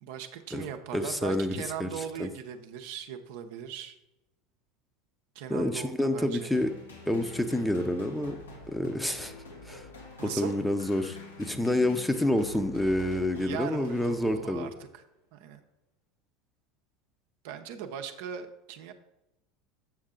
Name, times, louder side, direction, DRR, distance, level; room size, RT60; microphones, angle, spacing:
voice 1, 0.0-4.0 5.3-6.5 10.2-10.5 13.3-15.0 15.3-15.6 17.4-18.9, right 8 dB, 65° right, 6 dB, 0.7 m, -39 dB
voice 2, 0.9-2.3 5.5-6.7 7.1-8.4 8.7-9.3 9.6-9.9 10.2-14.7, left 1 dB, 5° left, 8 dB, 0.7 m, -28 dB
sound 1, 6.5-14.8, left 3 dB, 85° left, 1.4 m, -47 dB
7.6 x 6.3 x 3.7 m, 0.91 s
hypercardioid pair, 80°, 0 cm